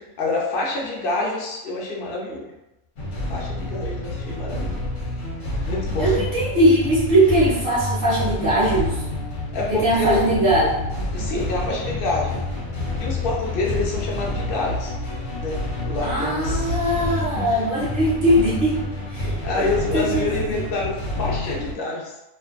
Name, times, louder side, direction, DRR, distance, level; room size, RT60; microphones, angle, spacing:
voice 1, 0.0-2.5 3.3-4.8 5.7-6.3 9.5-10.2 11.1-12.4 13.0-14.9 15.4-17.6 19.4-22.2, left 3 dB, 55° left, -3 dB, 0.7 m, -27 dB
sound 1, 3.0-21.7, left 1 dB, 70° left, 1.0 m, -28 dB
voice 2, 6.0-9.0 9.7-10.9 16.0-18.8 19.1-19.7 19.9-20.6, right 1 dB, 50° right, -7 dB, 0.9 m, -20 dB
2.5 x 2.3 x 2.4 m, 0.93 s
omnidirectional pair, 1.4 m